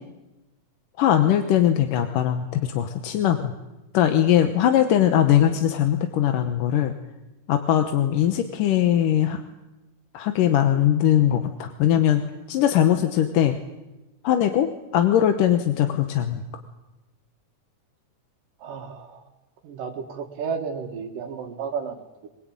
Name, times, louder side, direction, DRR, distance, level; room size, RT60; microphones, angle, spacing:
voice 1, 1.0-3.5 3.9-6.9 7.5-9.4 10.1-13.6 14.2-16.4, left 10 dB, 85° left, 6 dB, 2.7 m, -20 dB
voice 2, 18.6-19.2 19.6-22.3, right 6 dB, 80° right, 1 dB, 3.5 m, -33 dB
23.5 x 21.5 x 8.8 m, 1.0 s
omnidirectional pair, 3.7 m